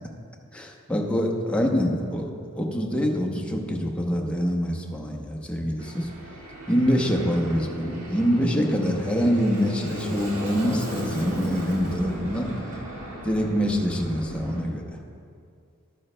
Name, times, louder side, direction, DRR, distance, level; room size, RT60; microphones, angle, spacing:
voice 1, 0.5-2.3 2.5-6.1 6.7-12.5 13.2-15.0, equal, 5° left, 0 dB, 0.7 m, -25 dB
Aircraft, 5.8-14.6, right 1 dB, 80° right, 1.6 m, -36 dB
12.0 x 9.2 x 2.2 m, 2.4 s
head